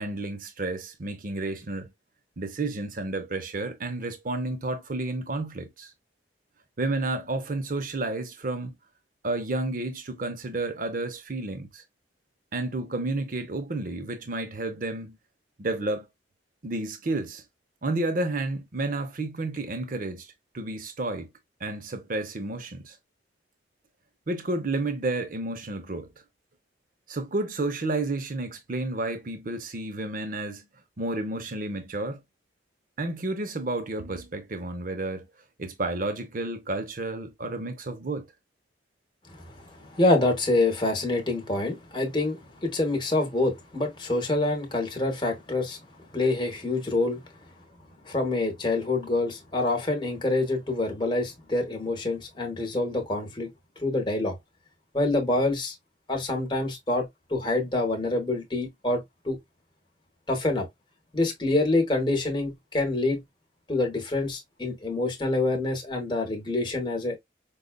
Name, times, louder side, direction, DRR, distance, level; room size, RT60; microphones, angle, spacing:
voice 1, 0.0-1.9 2.4-5.9 6.8-8.7 9.2-11.8 12.5-15.2 15.6-16.1 16.6-17.4 17.8-20.3 20.5-21.3 21.6-23.0 24.3-26.1 27.1-30.7 31.0-32.2 33.0-35.3 35.6-38.3, right 2 dB, 45° right, 0.6 m, -31 dB
voice 2, 39.8-45.8 46.1-47.2 48.1-53.5 53.8-54.3 54.9-55.7 56.1-57.0 57.3-59.4 60.3-60.7 61.1-63.2 63.7-67.2, left 2 dB, 25° left, 1.0 m, -26 dB
5.1 x 2.3 x 2.2 m
head